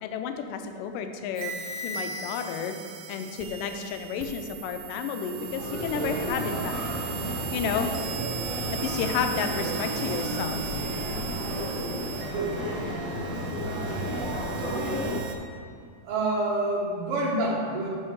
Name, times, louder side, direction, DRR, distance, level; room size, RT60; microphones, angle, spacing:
voice 1, 0.0-2.8 3.1-6.8 7.5-7.9 8.7-10.6, left 7 dB, 80° left, 7 dB, 2.1 m, -31 dB
sound 1, 1.4-15.4, right 7 dB, 85° right, 1.6 m, -38 dB
sound 2, 5.3-15.2, equal, 35° right, 0.7 m, -32 dB
voice 2, 14.6-15.0 16.0-17.9, right 2 dB, 70° right, -4 dB, 1.3 m, -28 dB
7.5 x 5.6 x 4.7 m, 2.2 s
omnidirectional pair, 4.2 m